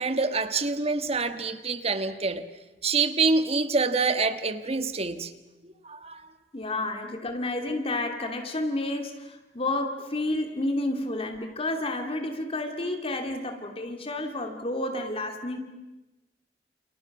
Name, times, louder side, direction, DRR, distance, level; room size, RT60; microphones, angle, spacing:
voice 1, 0.0-2.4 2.8-5.3 5.8-6.3, right 4 dB, 35° right, 1.5 m, -26 dB
voice 2, 6.5-15.6, left 2 dB, 35° left, 2.6 m, -30 dB
29.5 x 29.0 x 6.1 m
head